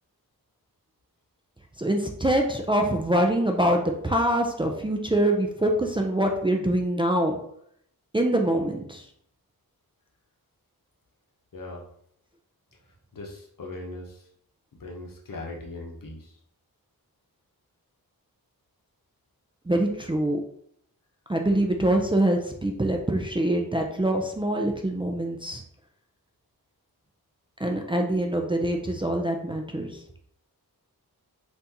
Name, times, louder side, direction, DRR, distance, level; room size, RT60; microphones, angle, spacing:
voice 1, 1.8-7.4 8.1-9.0 19.7-20.4 21.3-25.6 27.6-30.0, right 1 dB, 15° right, 1 dB, 0.4 m, -24 dB
voice 2, 11.5-11.9 13.1-14.3 14.7-16.4, left 2 dB, 65° left, 0 dB, 0.9 m, -39 dB
3.5 x 2.6 x 2.8 m, 0.67 s
wide cardioid pair, 65°, 36 cm